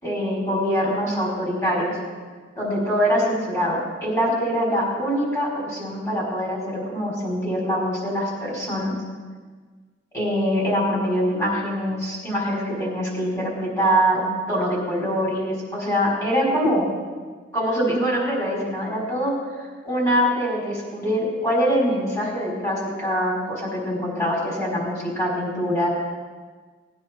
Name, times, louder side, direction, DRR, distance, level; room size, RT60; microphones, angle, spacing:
voice 1, 0.0-2.0 2.6-8.9 10.1-16.9 17.5-19.3 19.8-25.9, equal, 15° left, -5 dB, 4.9 m, -24 dB
19.5 x 9.7 x 4.5 m, 1.4 s
head